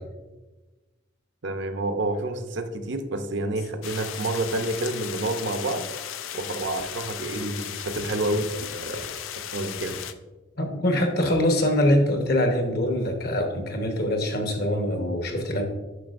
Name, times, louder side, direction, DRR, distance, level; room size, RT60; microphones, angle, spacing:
voice 1, 1.4-5.8 6.3-9.1 9.5-10.0, right 2 dB, 60° right, 7 dB, 0.6 m, -29 dB
sound 1, 3.8-10.1, left 10 dB, 85° left, 0.4 m, -36 dB
voice 2, 10.6-15.6, left 1 dB, 55° left, 4 dB, 1.0 m, -23 dB
9.2 x 5.8 x 2.5 m, 1.2 s
head